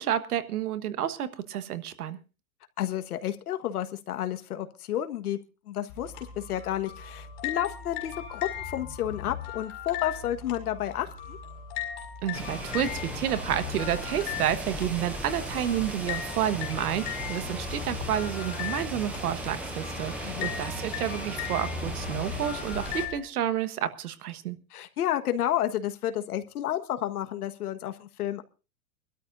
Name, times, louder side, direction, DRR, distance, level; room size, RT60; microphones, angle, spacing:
voice 1, 0.0-2.2 12.2-24.6, right 10 dB, 90° right, 12 dB, 1.5 m, -30 dB
voice 2, 2.8-5.4 5.7-11.4 20.2-20.5 24.7-28.4, left 11 dB, 90° left, 8 dB, 1.6 m, -31 dB
sound 1, 5.9-23.2, left 9 dB, 35° left, 5.6 m, -38 dB
sound 2, 12.3-23.1, right 1 dB, 5° right, 0.6 m, -37 dB
24.0 x 13.0 x 2.6 m, 0.32 s
supercardioid pair, 175°, 44 cm